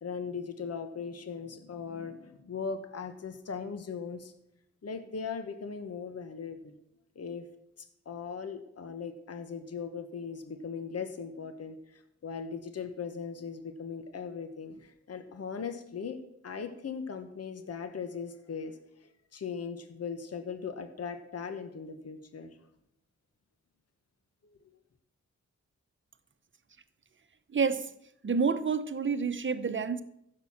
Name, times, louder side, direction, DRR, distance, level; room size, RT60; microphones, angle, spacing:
voice 1, 0.0-4.3 4.8-6.8 7.1-7.5 7.8-22.5 24.4-24.6, left 6 dB, 55° left, 8 dB, 1.2 m, -39 dB
voice 2, 27.5-27.9 28.2-30.0, right 5 dB, 40° right, 11 dB, 0.9 m, -28 dB
14.5 x 6.8 x 7.3 m, 0.79 s
wide cardioid pair, 110°, 29 cm